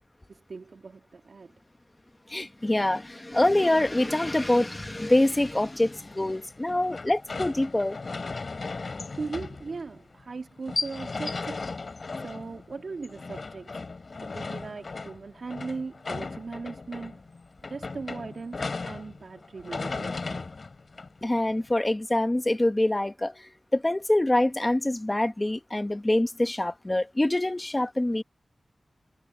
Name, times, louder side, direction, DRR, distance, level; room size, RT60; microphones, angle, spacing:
voice 1, 0.3-1.5 9.2-11.7 12.2-13.8 14.2-17.2 17.7-20.5, right 4 dB, 65° right, 3.2 m, -39 dB
voice 2, 2.3-8.0 21.2-28.2, left 1 dB, 20° left, 1.1 m, -25 dB
sound 1, 4.8-21.7, left 3 dB, 55° left, 4.5 m, -37 dB
wide cardioid pair, 110°, 0 cm